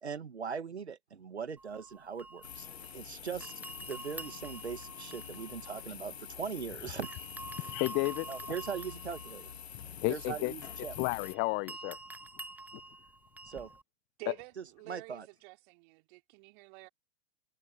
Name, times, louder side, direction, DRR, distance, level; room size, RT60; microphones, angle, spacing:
voice 1, 0.0-7.3 7.5-7.8 8.3-9.5 10.1-11.0 13.5-13.7 14.9-15.3, right 6 dB, 85° right, 1.7 m, -40 dB
sound 1, 1.6-3.1 3.4-6.6 7.0-13.8, right 2 dB, 5° right, 1.1 m, -48 dB
sound 2, 2.4-11.3, left 8 dB, 75° left, 2.5 m, -46 dB
voice 2, 7.7-8.3 10.0-10.5 11.0-12.0, left 28 dB, 35° left, 0.5 m, -32 dB
voice 3, 10.1-10.6 14.2-16.9, right 28 dB, 50° right, 3.7 m, -49 dB
figure-of-eight pair, 95°, 32 cm